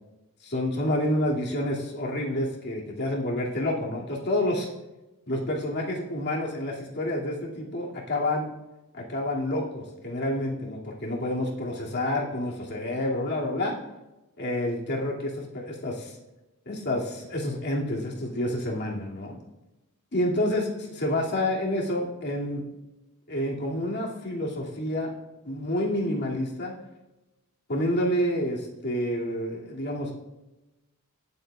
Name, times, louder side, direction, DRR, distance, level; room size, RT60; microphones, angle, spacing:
voice 1, 0.4-4.7 5.3-8.4 8.9-13.7 14.4-16.2 16.7-19.4 20.1-22.6 23.3-25.1 25.4-26.7 27.7-30.1, left 1 dB, 50° left, -2 dB, 2.3 m, -28 dB
20.0 x 7.5 x 2.4 m, 1.0 s
head